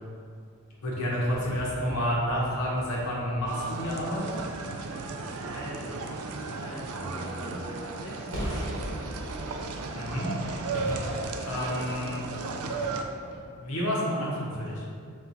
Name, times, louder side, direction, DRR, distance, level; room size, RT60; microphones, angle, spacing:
voice 1, 0.8-4.4 9.9-10.3 11.4-12.8 13.6-14.8, equal, 80° left, -5 dB, 0.9 m, -30 dB
sound 1, 1.3-13.4, equal, 60° right, 0.8 m, -41 dB
sound 2, 3.5-13.0, right 3 dB, 80° right, 0.4 m, -35 dB
voice 2, 5.4-9.0, equal, 20° left, -8 dB, 0.8 m, -42 dB
4.3 x 2.4 x 3.9 m, 2.2 s
head